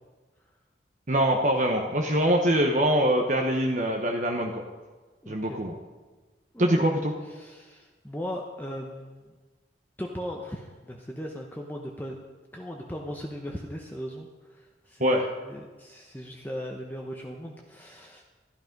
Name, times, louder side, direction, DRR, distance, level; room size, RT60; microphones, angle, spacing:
voice 1, 1.1-4.6 5.3-5.8 6.6-7.1 15.0-15.2, equal, 45° right, 1 dB, 1.1 m, -24 dB
voice 2, 5.2-5.6 6.5-6.7 7.2-9.3 10.0-12.2 12.5-18.2, equal, 10° left, 0 dB, 0.9 m, -38 dB
13.0 x 12.0 x 5.3 m, 1.3 s
head